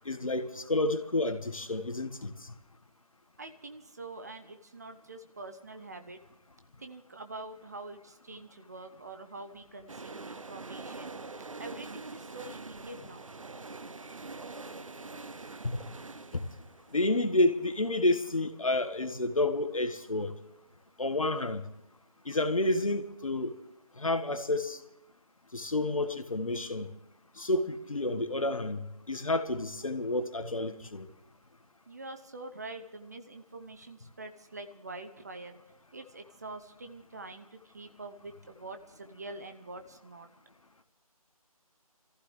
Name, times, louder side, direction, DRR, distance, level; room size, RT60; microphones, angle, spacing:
voice 1, 0.0-2.5 15.6-15.8 16.3-16.4 16.9-20.3 21.0-21.6 22.2-23.5 24.0-24.8 25.5-26.9 27.4-28.8 29.1-31.1, left 2 dB, 60° left, 1.6 m, -30 dB
voice 2, 3.4-6.2 6.8-11.1 11.6-13.2 31.9-35.6 35.9-40.3, right 2 dB, 25° right, 0.8 m, -45 dB
sound 1, 9.9-19.7 20.0-20.1, right 3 dB, 60° right, 0.8 m, -45 dB
26.5 x 15.0 x 3.2 m
figure-of-eight pair, 155°, 19 cm